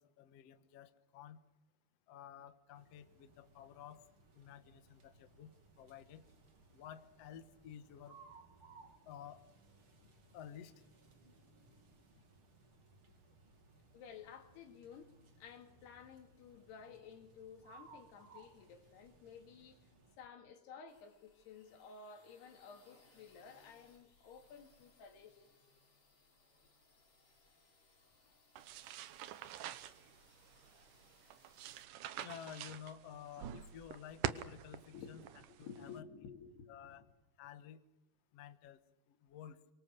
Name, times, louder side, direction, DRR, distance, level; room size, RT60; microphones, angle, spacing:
voice 1, 0.0-1.4 2.1-4.0 4.4-5.5 5.8-6.2 6.7-8.2 9.1-9.4 10.3-10.7 32.2-35.2 35.6-36.0 36.7-37.0 37.4-37.8 38.3-38.8 39.2-39.6, left 9 dB, 65° left, 10 dB, 1.6 m, -52 dB
sound 1, 2.7-20.2, right 3 dB, 35° right, 3.1 m, -64 dB
voice 2, 13.9-15.1 15.4-19.9 20.2-25.6 34.9-37.1, left 6 dB, 80° left, 5 dB, 4.4 m, -54 dB
sound 2, 20.9-31.8, left 3 dB, 30° left, 6.5 m, -69 dB
sound 3, 28.6-36.0, right 11 dB, 70° right, 2.1 m, -46 dB
26.5 x 24.0 x 6.7 m, 0.95 s
omnidirectional pair, 4.6 m